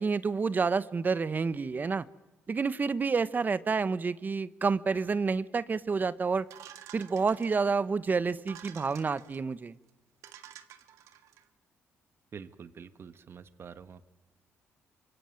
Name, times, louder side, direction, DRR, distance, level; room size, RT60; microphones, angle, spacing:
voice 1, 0.0-2.0 2.5-6.5 6.9-9.8, right 4 dB, 35° right, 16 dB, 1.1 m, -29 dB
sound 1, 6.5-7.8 8.4-9.4 9.9-10.0 10.2-11.4, right 11 dB, 85° right, 1.7 m, -50 dB
voice 2, 12.3-14.1, right 6 dB, 50° right, 12 dB, 1.6 m, -47 dB
25.0 x 24.5 x 9.0 m, 1.1 s
cardioid pair, 75°, 5 cm